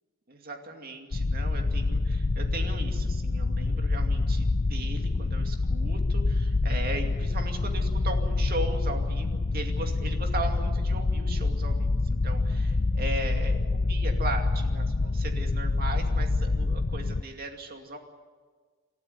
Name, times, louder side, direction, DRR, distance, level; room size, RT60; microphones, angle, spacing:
voice 1, 0.3-18.0, right 2 dB, 45° right, 4 dB, 2.4 m, -38 dB
sound 1, 1.1-17.2, left 3 dB, 40° left, 0.5 m, -26 dB
28.0 x 12.5 x 9.5 m, 1.5 s
head